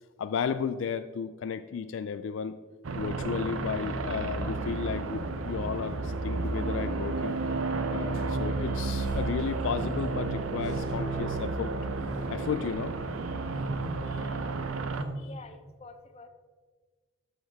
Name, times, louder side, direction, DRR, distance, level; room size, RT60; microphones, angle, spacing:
voice 1, 0.2-2.6 3.0-7.4 7.9-11.7 12.3-13.0 14.1-14.3 15.2-15.3, left 6 dB, 65° left, 11 dB, 0.3 m, -34 dB
sound 1, 2.8-15.0, right 3 dB, 85° right, 0.7 m, -32 dB
sound 2, 9.0-15.1, equal, 40° right, 3.0 m, -43 dB
voice 2, 15.2-16.3, left 3 dB, 30° left, 8 dB, 0.7 m, -48 dB
12.5 x 6.5 x 3.5 m, 1.5 s
head